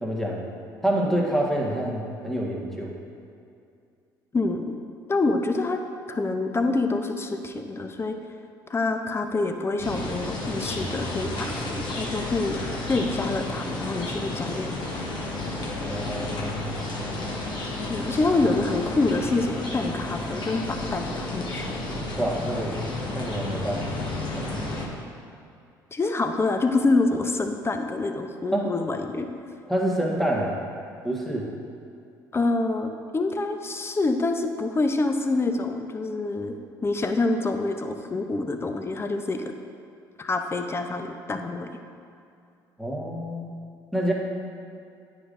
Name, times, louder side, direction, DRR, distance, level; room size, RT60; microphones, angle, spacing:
voice 1, 0.0-0.4 0.8-2.9 15.9-16.7 22.2-22.7 23.1-23.8 24.3-24.6 28.5-28.7 29.7-30.5 31.0-31.5 42.8-43.5 43.9-44.1, right 1 dB, 5° left, -3 dB, 1.4 m, -27 dB
voice 2, 4.3-4.7 5.1-5.8 6.1-8.2 8.7-12.6 12.9-14.8 17.9-21.7 25.9-29.3 32.3-36.6 36.8-39.4 40.2-41.7, left 3 dB, 25° left, 6 dB, 0.6 m, -26 dB
sound 1, 9.8-24.9, left 2 dB, 45° left, 1.3 m, -32 dB
9.6 x 5.0 x 2.6 m, 2.5 s
hypercardioid pair, 60°, 10 cm